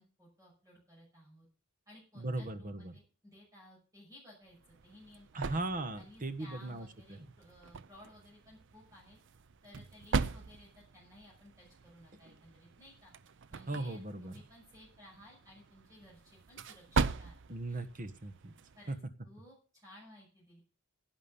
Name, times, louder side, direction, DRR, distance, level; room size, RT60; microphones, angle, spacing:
voice 1, 0.0-1.5 1.9-5.6 6.0-9.2 9.6-13.1 13.5-17.8 18.7-18.9 19.2-20.6, left 1 dB, 15° right, -3 dB, 6.0 m, -58 dB
voice 2, 2.1-3.0 5.3-7.3 12.2-12.3 13.7-14.4 17.5-18.5 18.9-19.0, right 2 dB, 40° right, 10 dB, 1.3 m, -38 dB
sound 1, 4.5-19.0, right 4 dB, 60° right, 0.6 m, -40 dB
11.0 x 9.6 x 7.0 m, 0.37 s
head